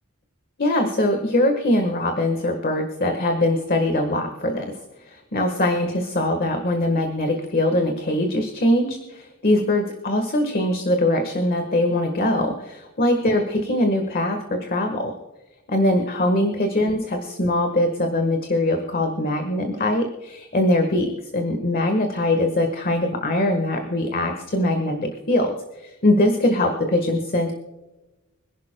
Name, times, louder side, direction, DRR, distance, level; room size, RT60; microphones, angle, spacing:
voice 1, 0.6-4.7 5.0-15.1 15.7-27.5, left 1 dB, 40° left, 5 dB, 1.4 m, -22 dB
26.0 x 11.0 x 2.2 m, 1.1 s
head